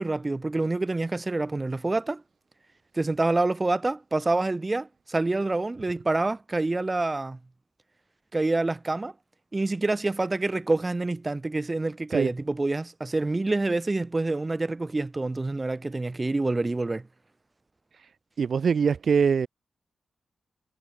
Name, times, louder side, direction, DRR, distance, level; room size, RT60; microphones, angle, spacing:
voice 1, 0.0-2.2 2.9-7.4 8.3-9.1 9.5-17.0, right 2 dB, 25° right, 6.3 m, -27 dB
voice 2, 18.4-19.5, right 6 dB, 60° right, 1.3 m, -23 dB
cardioid pair, 95°, 0 cm